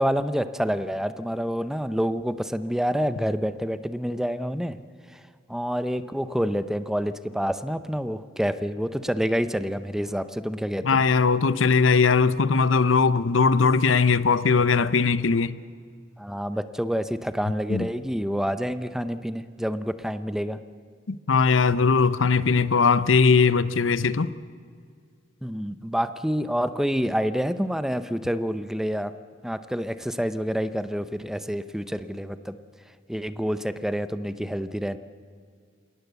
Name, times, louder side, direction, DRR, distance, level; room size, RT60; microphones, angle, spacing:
voice 1, 0.0-4.8 5.1-5.2 5.5-11.0 16.2-20.6 25.4-29.1 29.4-32.6 33.1-35.0, equal, 5° right, 0.7 m, -28 dB
voice 2, 10.8-15.5 17.7-17.9 21.1-24.3, left 5 dB, 85° left, 0.7 m, -20 dB
27.0 x 18.0 x 8.2 m
head